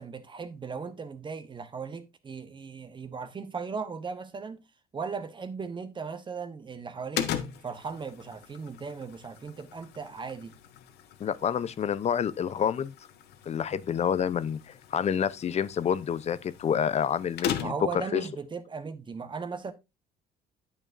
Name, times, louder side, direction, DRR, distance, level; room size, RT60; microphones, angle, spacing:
voice 1, 0.0-4.6 4.9-7.3 7.6-10.5 17.6-19.7, right 5 dB, 30° right, 1.0 m, -37 dB
sound 1, 7.1-18.0, left 9 dB, 75° left, 1.2 m, -39 dB
voice 2, 11.2-12.9 13.5-18.2, left 8 dB, 40° left, 0.6 m, -28 dB
9.0 x 8.9 x 2.6 m
cardioid pair, 110°, 17 cm